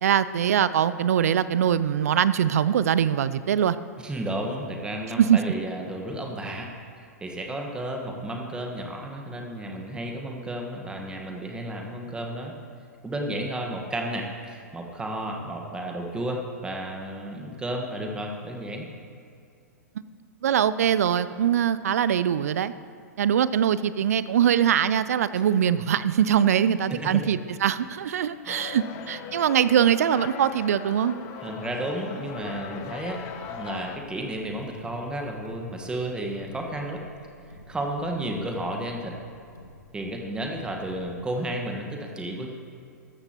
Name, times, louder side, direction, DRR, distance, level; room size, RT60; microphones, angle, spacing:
voice 1, 0.0-3.8 5.2-5.4 20.4-22.7 23.2-31.2, right 9 dB, 60° right, 16 dB, 0.4 m, -22 dB
voice 2, 4.0-6.7 7.2-12.5 13.0-18.9 26.6-27.2 28.1-28.2 28.5-28.6 31.4-33.2 33.5-37.0 37.7-39.2 39.9-42.5, right 1 dB, 10° right, 2 dB, 1.4 m, -32 dB
sound 1, 28.5-34.0, left 7 dB, 35° left, 0.9 m, -39 dB
Car, 32.3-41.1, left 1 dB, 85° left, 1.9 m, -51 dB
14.5 x 13.5 x 3.0 m, 2.5 s
figure-of-eight pair, 110°, 9 cm